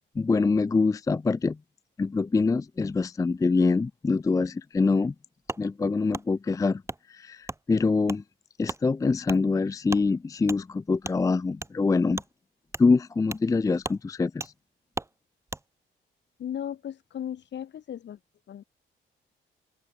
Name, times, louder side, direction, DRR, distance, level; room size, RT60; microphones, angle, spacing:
voice 1, 0.2-1.6 2.0-5.1 5.6-6.8 7.1-8.2 8.6-12.2 12.8-14.5, left 4 dB, 15° left, 0.4 m, -24 dB
Wood, 5.5-5.6 6.1-6.3 6.9-7.0 7.5-7.6 8.1-8.2 8.6-8.8 9.2-9.4 9.9-10.1 10.5-10.6 11.0-11.2 11.6-11.7 12.1-12.3 12.7-12.9 13.3-13.5 13.8-14.0 14.4-14.5 14.9-15.1 15.5-15.6, right 2 dB, 15° right, 1.3 m, -35 dB
voice 2, 16.4-18.2 18.5-18.6, left 10 dB, 65° left, 4.7 m, -36 dB
open air
cardioid pair, 90°, 20 cm